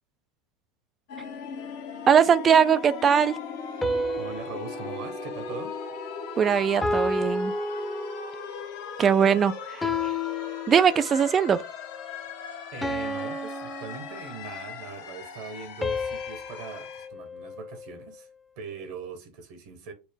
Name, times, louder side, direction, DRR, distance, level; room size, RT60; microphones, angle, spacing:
sound 1, 1.1-17.1, left 6 dB, 65° left, 0.9 m, -39 dB
voice 1, 2.1-3.4 6.4-7.5 9.0-10.1 10.7-11.6, right 7 dB, 30° right, 0.3 m, -21 dB
sound 2, 3.8-6.3 6.8-8.6 9.8-11.3 12.8-14.7 15.8-18.2, left 1 dB, 10° left, 0.6 m, -32 dB
voice 2, 4.2-5.7 12.3-18.3 18.6-19.9, right 5 dB, 65° right, 1.1 m, -41 dB
4.5 x 2.0 x 3.5 m
hypercardioid pair, 95°, 0 cm